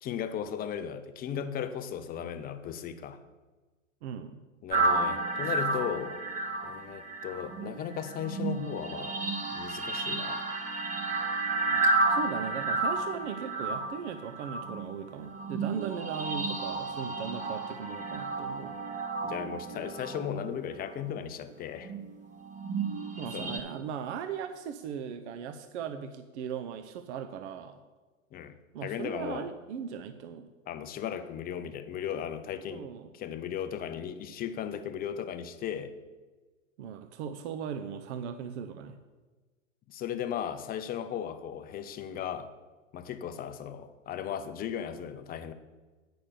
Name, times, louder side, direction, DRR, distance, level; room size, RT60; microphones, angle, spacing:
voice 1, 0.0-3.2 4.6-6.2 6.6-9.2 9.5-10.4 19.2-21.9 23.3-23.6 28.3-29.5 30.7-32.9 33.1-35.9 39.9-42.5 42.9-45.5, left 9 dB, 25° left, 10 dB, 0.6 m, -36 dB
voice 2, 4.0-4.4 11.7-11.8 12.1-18.8 23.2-27.8 28.7-30.5 32.7-33.1 36.8-39.0, right 7 dB, 55° right, 8 dB, 0.7 m, -38 dB
sound 1, 4.7-21.2 21.8-23.6, right 2 dB, 20° right, 1.0 m, -32 dB
8.5 x 6.0 x 6.8 m, 1.3 s
figure-of-eight pair, 95°, 40 cm